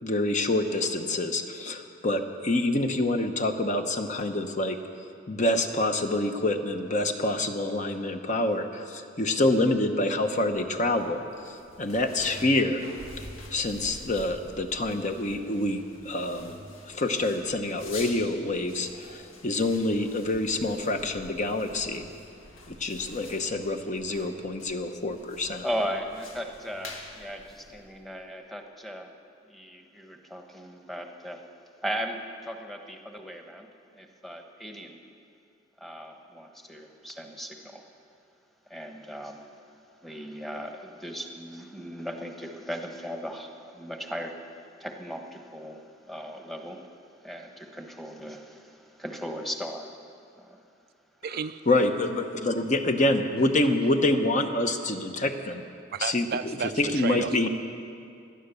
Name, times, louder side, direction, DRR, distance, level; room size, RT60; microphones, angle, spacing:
voice 1, 0.0-4.8 5.3-12.9 13.2-13.3 13.5-16.6 16.9-22.1 22.7-25.7 51.7-55.6 56.0-56.3 56.8-57.5, left 2 dB, 40° left, 6 dB, 0.9 m, -27 dB
sound 1, 10.4-28.2, left 2 dB, 90° left, 1.9 m, -47 dB
voice 2, 25.6-29.1 29.5-31.5 31.8-35.0 35.8-37.9 38.7-46.9 47.2-50.0 50.4-50.6, equal, ahead, 3 dB, 1.1 m, -37 dB
voice 3, 51.2-51.6 55.9-57.5, right 6 dB, 50° right, 10 dB, 0.4 m, -33 dB
18.0 x 11.5 x 6.9 m, 2.5 s
head